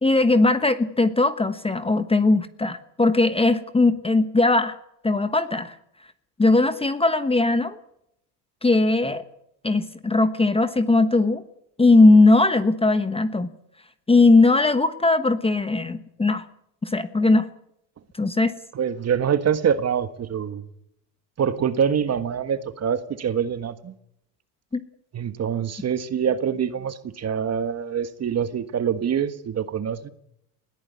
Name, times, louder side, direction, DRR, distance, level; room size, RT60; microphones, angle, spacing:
voice 1, 0.0-4.8 5.0-5.7 6.4-7.8 8.6-9.2 9.6-11.4 11.8-13.5 14.1-16.5 16.8-17.5 18.2-18.5 24.7-24.8, left 2 dB, 10° left, 1.2 m, -19 dB
voice 2, 18.7-20.6 21.4-23.9 25.1-30.1, right 8 dB, 30° right, 1.6 m, -25 dB
20.5 x 14.0 x 9.5 m
supercardioid pair, 100°, 48 cm